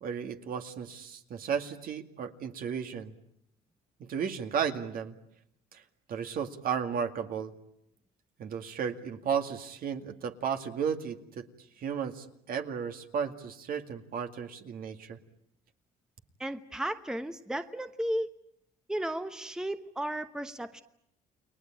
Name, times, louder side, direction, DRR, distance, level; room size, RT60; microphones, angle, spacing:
voice 1, 0.0-3.1 4.0-5.1 5.7-5.8 6.1-7.5 8.4-11.5 11.8-15.2, right 7 dB, 60° right, 6 dB, 2.3 m, -34 dB
voice 2, 16.4-18.3 18.9-20.8, right 1 dB, 5° right, 9 dB, 1.1 m, -34 dB
30.0 x 21.0 x 8.9 m, 0.75 s
cardioid pair, 110°, 17 cm